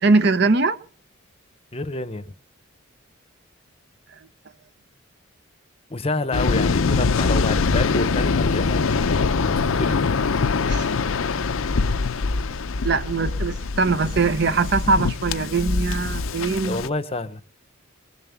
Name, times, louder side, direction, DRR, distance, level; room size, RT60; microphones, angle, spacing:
voice 1, 0.0-0.8 10.7-10.9 12.8-16.8, right 3 dB, 50° right, 0.7 m, -21 dB
voice 2, 1.7-2.3 5.9-9.1 9.4-10.0 16.6-17.4, left 2 dB, 25° left, 0.8 m, -29 dB
Waves surf, 6.3-16.9, left 4 dB, 75° left, 0.6 m, -23 dB
21.5 x 7.3 x 7.0 m
head